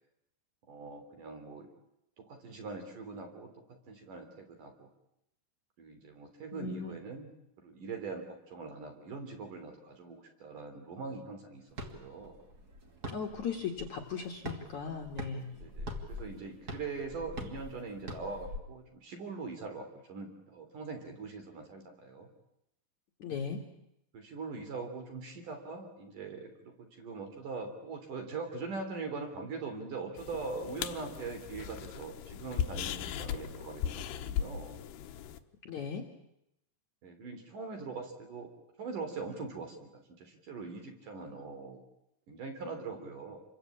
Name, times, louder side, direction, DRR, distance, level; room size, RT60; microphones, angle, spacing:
voice 1, 0.7-1.7 2.2-3.5 3.9-4.9 5.8-7.3 7.6-11.6 11.9-12.4 15.5-22.3 24.1-34.8 37.0-38.5 38.8-39.9 40.2-41.8 42.3-43.4, right 4 dB, 50° right, 5 dB, 4.6 m, -42 dB
voice 2, 6.5-6.9 13.1-15.5 23.2-23.6 35.7-36.0, left 6 dB, 55° left, 2 dB, 2.5 m, -37 dB
sound 1, 11.7-18.6, equal, 30° right, 2.0 m, -44 dB
sound 2, 30.2-35.4, left 9 dB, 70° left, 3.0 m, -38 dB
28.0 x 23.5 x 8.7 m, 0.83 s
omnidirectional pair, 5.3 m